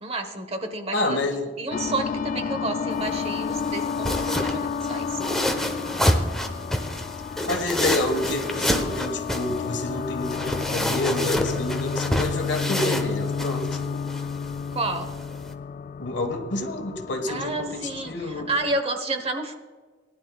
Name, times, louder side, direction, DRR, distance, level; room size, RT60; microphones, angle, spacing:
voice 1, 0.0-1.2 1.6-5.2 14.7-15.1 17.3-19.6, right 2 dB, 35° right, 8 dB, 1.1 m, -30 dB
voice 2, 0.9-1.5 7.5-13.8 16.0-18.4, left 2 dB, 75° left, 5 dB, 1.5 m, -28 dB
sound 1, 1.7-18.8, left 6 dB, 45° left, 0.3 m, -31 dB
sound 2, 2.9-15.5, left 1 dB, ahead, 1.0 m, -29 dB
19.5 x 11.0 x 2.4 m, 1.4 s
head